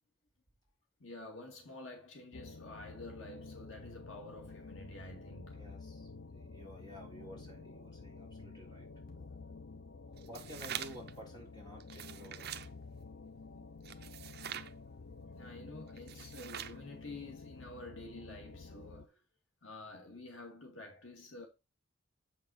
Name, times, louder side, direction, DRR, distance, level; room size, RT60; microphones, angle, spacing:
voice 1, 1.0-5.6 15.2-19.2 19.6-21.5, left 2 dB, 80° left, 2.2 m, -49 dB
sound 1, 2.3-19.1, left 3 dB, 65° left, 0.6 m, -51 dB
voice 2, 5.5-8.9 10.3-12.5, equal, 20° left, 3.7 m, -52 dB
sound 2, 6.8-11.8, equal, 45° left, 2.2 m, -63 dB
sound 3, 10.2-11.1 11.8-12.7 13.8-14.7 16.0-16.8, right 10 dB, 55° right, 0.7 m, -44 dB
7.7 x 5.7 x 4.2 m
head